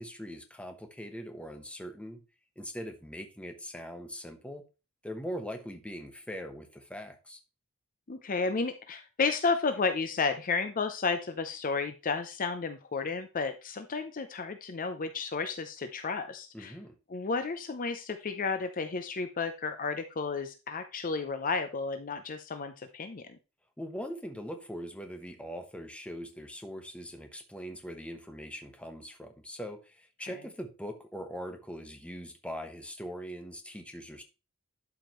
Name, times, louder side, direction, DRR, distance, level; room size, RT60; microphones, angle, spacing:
voice 1, 0.0-2.2 2.6-4.6 5.0-7.4 16.5-17.0 23.8-34.2, equal, 5° left, 1.1 m, -41 dB
voice 2, 8.1-16.7 17.1-23.4, left 4 dB, 40° left, 0.6 m, -32 dB
11.5 x 5.0 x 3.1 m
head